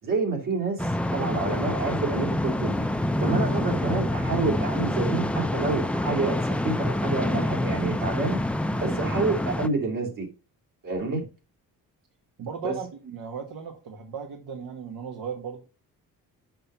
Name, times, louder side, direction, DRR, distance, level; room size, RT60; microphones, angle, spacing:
voice 1, 0.0-8.4 8.8-10.3 10.8-11.2 12.6-12.7, right 3 dB, 65° right, 3.1 m, -28 dB
sound 1, 0.8-9.7, left 1 dB, 5° left, 0.4 m, -27 dB
voice 2, 12.4-15.6, right 6 dB, 85° right, 1.4 m, -36 dB
6.7 x 5.6 x 5.4 m
cardioid pair, 110°, 35 cm